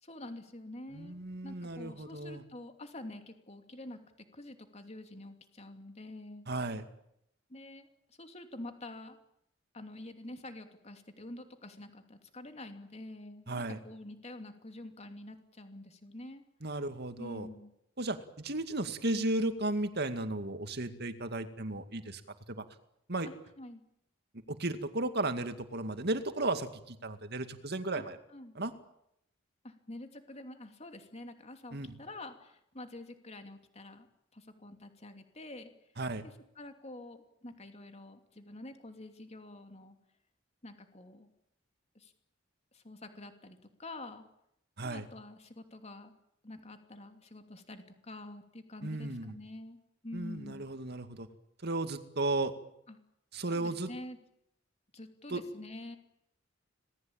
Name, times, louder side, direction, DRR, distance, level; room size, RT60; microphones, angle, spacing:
voice 1, 0.0-4.0 4.3-6.4 7.5-9.2 9.7-16.4 17.2-17.7 23.2-23.8 27.9-28.0 28.3-28.5 29.6-34.1 34.3-35.7 36.2-40.0 40.6-41.3 41.9-42.1 42.7-44.2 44.8-46.1 46.4-49.8 50.0-50.7 52.9-53.0 53.5-54.2 54.9-56.0, left 1 dB, 35° left, 6 dB, 2.9 m, -47 dB
voice 2, 0.9-2.4 6.5-6.8 13.5-13.8 16.6-17.5 18.0-22.2 22.5-22.6 23.1-23.3 24.5-28.2 28.6-28.7 31.7-31.9 36.0-36.2 44.8-45.1 48.8-49.3 50.1-51.3 51.6-52.5 53.3-53.9 55.3-55.4, right 2 dB, 55° right, 9 dB, 2.2 m, -34 dB
26.0 x 19.5 x 8.9 m, 0.77 s
head